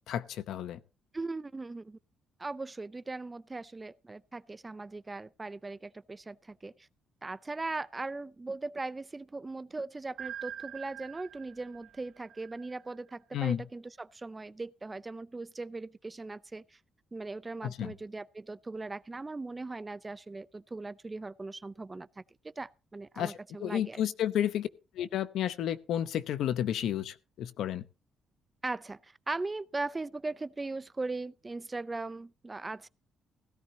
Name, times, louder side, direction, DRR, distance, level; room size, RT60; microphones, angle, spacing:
voice 1, 0.1-0.8 13.3-13.6 17.6-17.9 23.2-24.7 24.9-27.8, left 10 dB, 80° left, 0.8 m, -32 dB
voice 2, 1.1-2.0 2.4-6.9 7.2-16.6 17.1-24.0 28.6-32.9, right 3 dB, 20° right, 0.5 m, -39 dB
sound 1, 10.2-13.1, right 10 dB, 70° right, 0.6 m, -45 dB
16.5 x 13.5 x 2.8 m
cardioid pair, 90°, 0 cm